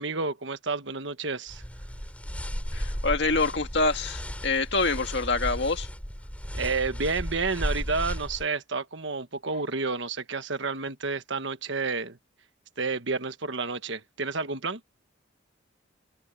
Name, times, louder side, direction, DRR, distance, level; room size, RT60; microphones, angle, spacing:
voice 1, 0.0-1.6 6.5-12.2 12.8-14.8, right 4 dB, 70° right, 1.4 m, -30 dB
sound 1, 1.5-8.5, equal, 5° left, 3.9 m, -34 dB
voice 2, 2.7-5.9, left 3 dB, 60° left, 1.9 m, -26 dB
head